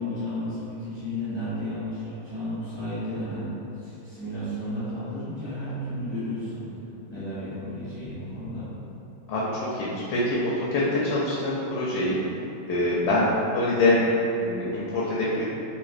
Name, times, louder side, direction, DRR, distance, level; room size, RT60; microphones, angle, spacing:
voice 1, 0.0-3.5 3.8-6.7 7.0-8.7, left 1 dB, 15° left, -13 dB, 1.1 m, -33 dB
voice 2, 9.3-12.2 12.7-13.3 13.5-14.0 14.4-15.4, left 2 dB, 90° left, -6 dB, 1.3 m, -25 dB
4.0 x 2.6 x 2.4 m, 2.9 s
omnidirectional pair, 2.1 m